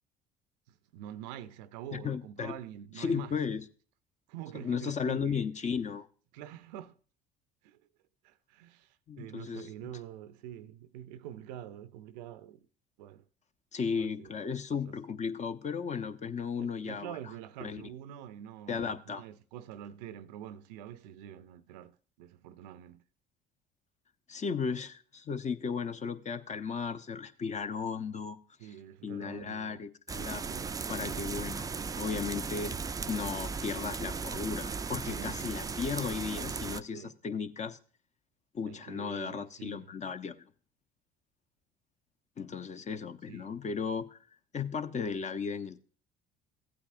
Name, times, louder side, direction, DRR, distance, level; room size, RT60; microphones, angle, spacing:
voice 1, 0.9-3.4 4.3-5.5 6.3-7.0 7.6-7.8 8.2-12.7 13.0-13.2 14.0-14.3 16.2-23.0 28.6-29.9 30.4-30.8 31.1-31.3 35.1-35.4 36.3-36.5 36.9-37.2 38.7-39.9 43.3-43.5, right 11 dB, 80° right, 0.6 m, -46 dB
voice 2, 1.9-2.6 3.0-3.6 4.5-6.1 9.1-9.7 13.7-17.2 17.6-17.8 18.7-19.2 24.3-28.4 29.0-30.4 30.9-31.7 32.0-32.7 33.1-37.8 38.5-40.4 42.4-44.2 44.5-45.8, left 6 dB, 35° left, 0.8 m, -35 dB
sound 1, 30.1-36.8, right 5 dB, 15° right, 0.4 m, -36 dB
15.0 x 8.5 x 2.5 m
hypercardioid pair, 65°, 21 cm